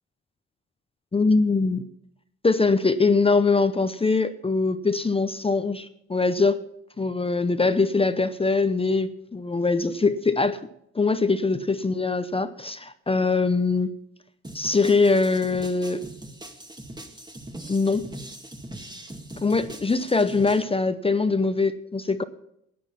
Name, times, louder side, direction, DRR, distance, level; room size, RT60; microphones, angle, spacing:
voice 1, 1.1-1.9 2.4-6.6 7.0-10.6 10.9-13.9 14.5-16.0 17.7-18.1 19.4-22.2, left 3 dB, 20° left, 0.7 m, -22 dB
sound 1, 14.4-20.6, right 1 dB, 15° right, 1.9 m, -41 dB
13.0 x 9.5 x 5.8 m
cardioid pair, 90°, 30 cm